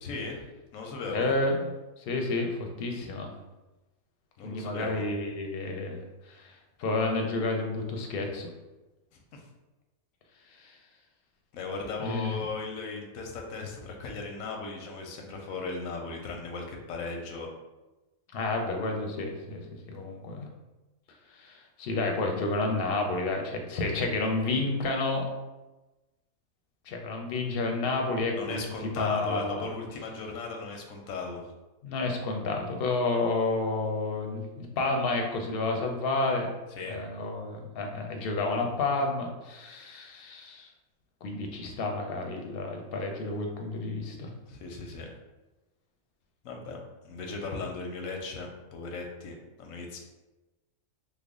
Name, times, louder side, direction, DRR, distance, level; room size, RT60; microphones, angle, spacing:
voice 1, 0.0-0.4 0.7-1.3 4.4-5.0 9.3-9.4 11.5-17.5 28.4-31.5 36.7-37.0 44.5-45.1 46.4-50.0, left 3 dB, 90° left, 2 dB, 1.0 m, -37 dB
voice 2, 1.1-3.3 4.4-6.0 6.3-8.5 10.5-10.8 12.0-12.4 18.3-19.6 19.9-20.5 21.3-25.3 26.9-29.6 31.8-36.5 36.9-40.7 41.2-44.3, left 2 dB, 60° left, 2 dB, 0.6 m, -30 dB
3.3 x 2.0 x 3.6 m, 1.1 s
omnidirectional pair, 1.4 m